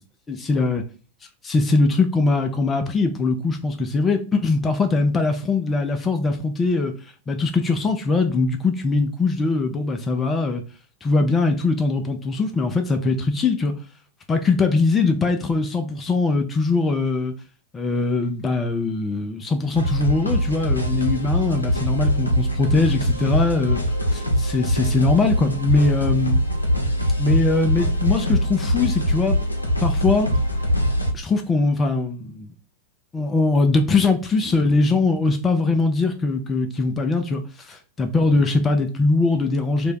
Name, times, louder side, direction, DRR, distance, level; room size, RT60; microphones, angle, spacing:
voice 1, 0.3-0.8 1.4-6.9 7.3-10.6 11.0-13.7 14.3-17.3 17.7-23.8 24.1-26.4 27.2-29.4 29.8-30.3 31.1-32.5 33.1-39.9, left 3 dB, 20° left, 0.4 m, -21 dB
sound 1, 19.7-31.1, equal, 85° left, 0.5 m, -23 dB
2.5 x 2.1 x 3.6 m
figure-of-eight pair, 90°, 0 cm